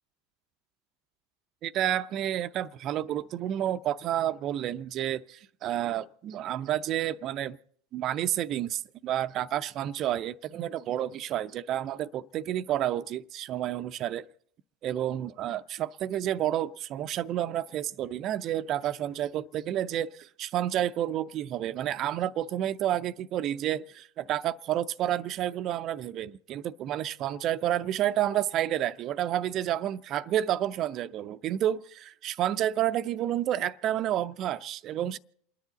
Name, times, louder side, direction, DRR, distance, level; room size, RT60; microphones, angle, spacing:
voice 1, 1.6-7.6 7.9-14.3 14.8-35.2, right 11 dB, 45° right, 0.5 m, -30 dB
28.5 x 10.5 x 4.0 m
figure-of-eight pair, 80°, 0 cm